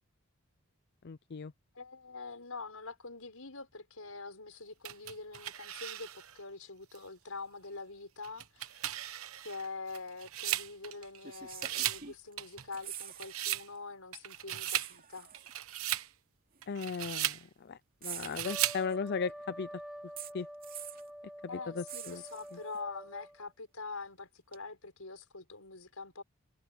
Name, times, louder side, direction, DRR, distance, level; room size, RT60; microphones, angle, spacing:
voice 1, 1.0-1.5 16.7-19.7 20.3-20.5 21.5-22.2 22.5-22.6, left 5 dB, 50° left, 0.5 m, -37 dB
voice 2, 1.7-8.8 9.4-15.3 21.5-26.2, left 3 dB, 75° left, 5.4 m, -45 dB
sound 1, 4.8-6.4 6.9-7.0 8.2-11.2 11.5-12.1 12.4-13.7 14.1-14.9 15.3-16.1 16.6-17.4 18.1-18.8, right 13 dB, 70° right, 1.1 m, -36 dB
sound 2, 10.4-10.5 11.2-12.3 12.6-13.5 13.8-13.9 14.6-15.5 16.5-16.6 18.0-19.1 20.2-21.1 21.9-22.8 24.5-24.6, right 10 dB, 40° right, 2.7 m, -46 dB
Trumpet, 18.4-23.4, equal, ahead, 6.2 m, -47 dB
head